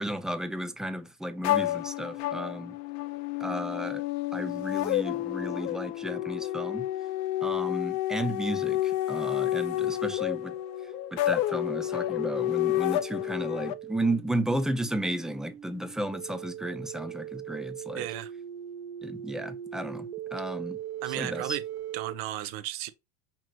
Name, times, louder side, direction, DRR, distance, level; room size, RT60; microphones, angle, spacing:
voice 1, 0.0-2.8 3.4-4.0 4.3-6.9 7.4-10.5 10.8-18.1 19.0-20.8 21.1-21.6, right 1 dB, ahead, 0.5 m, -33 dB
sound 1, 1.4-13.7, left 14 dB, 55° left, 0.6 m, -30 dB
sound 2, 8.9-22.1, right 10 dB, 85° right, 1.1 m, -41 dB
voice 2, 18.0-18.3 21.0-21.6 21.9-22.9, right 14 dB, 65° right, 0.9 m, -34 dB
5.8 x 3.1 x 2.4 m
supercardioid pair, 120°, 32 cm